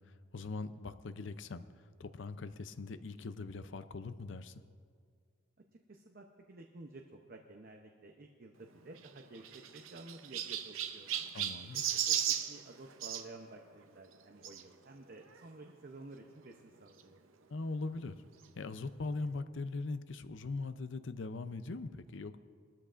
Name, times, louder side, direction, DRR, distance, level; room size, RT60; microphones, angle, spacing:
voice 1, 0.0-4.6 11.3-11.8 17.5-18.2 18.5-22.4, left 3 dB, 65° left, 12 dB, 0.6 m, -41 dB
voice 2, 5.9-11.1 11.7-17.2, right 2 dB, 50° right, 2 dB, 0.7 m, -52 dB
Chirp tweet, 8.9-13.2 14.4-14.6 15.3-15.4 15.6-15.7 17.0-17.1, right 10 dB, 80° right, 0.7 m, -36 dB
21.5 x 13.0 x 2.5 m, 2.1 s
head